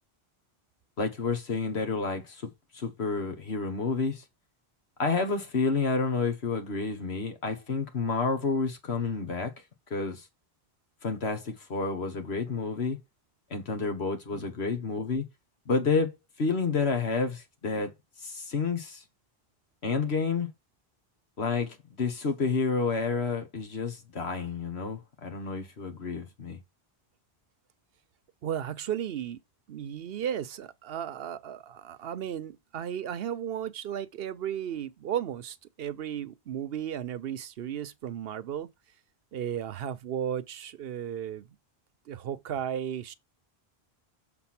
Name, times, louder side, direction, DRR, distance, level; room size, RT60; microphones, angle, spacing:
voice 1, 1.0-2.4 2.7-4.2 5.0-9.5 9.9-10.2 11.0-13.0 13.5-15.3 15.7-16.1 16.4-17.9 18.2-19.0 19.8-20.5 21.4-26.6, left 4 dB, 90° left, 1.8 m, -29 dB
voice 2, 28.4-29.4 29.7-38.7 39.3-41.5 42.1-43.1, right 9 dB, 70° right, 0.9 m, -34 dB
6.9 x 4.0 x 5.8 m
omnidirectional pair, 1.1 m